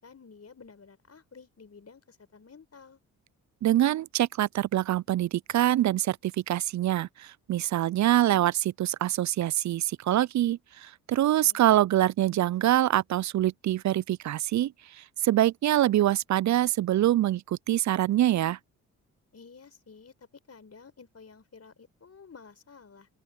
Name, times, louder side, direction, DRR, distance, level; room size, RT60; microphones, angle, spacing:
voice 1, 0.0-3.0 11.4-11.6 19.3-20.1 20.5-23.1, left 5 dB, 40° left, 5.8 m, -52 dB
voice 2, 3.6-14.7 15.2-18.6, right 13 dB, 45° right, 0.5 m, -25 dB
open air
hypercardioid pair, 45°, 39 cm